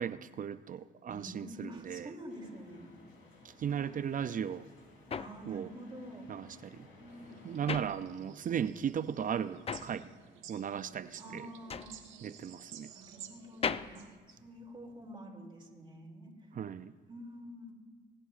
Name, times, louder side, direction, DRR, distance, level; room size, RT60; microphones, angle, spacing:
voice 1, 0.0-2.1 3.4-4.7 5.5-5.7 6.3-6.9 7.4-10.1 10.5-11.5 12.2-12.9 16.5-17.0, right 8 dB, 45° right, 0.4 m, -36 dB
voice 2, 1.1-3.0 5.2-6.3 7.0-7.7 11.2-12.0 12.9-16.3 17.1-17.7, equal, 25° right, 2.8 m, -48 dB
sound 1, 2.3-7.9, left 2 dB, 80° left, 3.6 m, -58 dB
sound 2, 4.3-8.6 8.9-15.2, left 6 dB, 30° left, 0.4 m, -41 dB
sound 3, 7.1-14.2, right 9 dB, 80° right, 1.2 m, -53 dB
25.0 x 11.0 x 2.5 m
cardioid pair, 90°, 20 cm